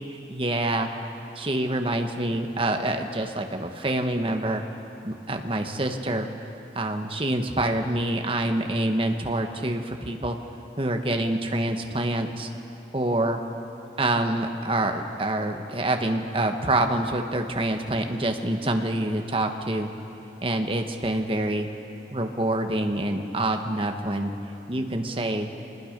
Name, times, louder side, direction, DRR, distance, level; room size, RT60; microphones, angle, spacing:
voice 1, 0.3-0.9 1.4-4.6 5.0-6.3 6.7-10.4 10.8-12.5 12.9-13.4 14.0-19.9 20.4-21.7 22.1-24.3 24.7-25.5, right 1 dB, 30° right, 4 dB, 1.3 m, -26 dB
24.5 x 20.5 x 5.2 m, 2.8 s
head